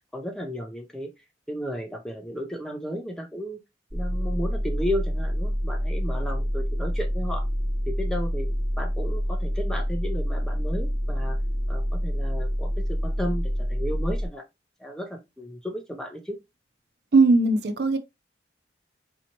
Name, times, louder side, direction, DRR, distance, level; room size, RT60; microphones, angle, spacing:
voice 1, 0.1-1.1 1.5-3.6 3.9-7.5 7.9-8.5 8.8-11.4 11.7-14.4 14.8-16.4, equal, 5° left, 0.6 m, -33 dB
sound 1, 3.9-14.3, equal, 10° right, 1.1 m, -27 dB
voice 2, 17.1-18.0, right 3 dB, 60° right, 0.5 m, -19 dB
4.1 x 2.8 x 2.8 m
head